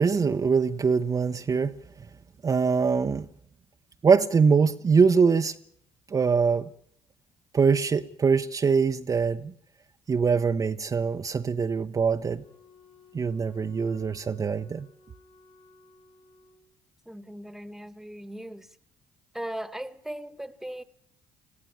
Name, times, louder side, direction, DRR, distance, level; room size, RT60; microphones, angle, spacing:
voice 1, 0.0-1.7 2.4-3.3 4.0-5.6 6.1-6.7 7.5-9.5 10.1-12.4 13.1-14.9, right 5 dB, 35° right, 0.8 m, -23 dB
Wind instrument woodwind instrument, 12.4-16.7, left 5 dB, 65° left, 5.9 m, -57 dB
voice 2, 17.0-18.8 19.3-20.8, right 1 dB, 5° right, 1.4 m, -38 dB
21.0 x 15.0 x 8.6 m
supercardioid pair, 65°, 10 cm